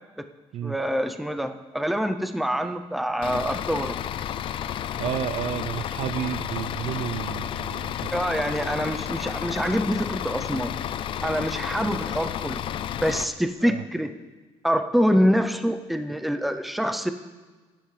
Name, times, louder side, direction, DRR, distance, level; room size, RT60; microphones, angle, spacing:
voice 1, 0.6-4.0 8.1-10.7 11.2-12.6 13.0-14.1 14.6-17.1, equal, ahead, 9 dB, 0.6 m, -25 dB
Bus / Idling, 3.2-13.2, left 10 dB, 55° left, 0.4 m, -31 dB
voice 2, 5.0-8.3 13.6-13.8, right 11 dB, 80° right, 14 dB, 0.5 m, -31 dB
16.0 x 10.5 x 3.3 m, 1.4 s
cardioid pair, 140°, 11 cm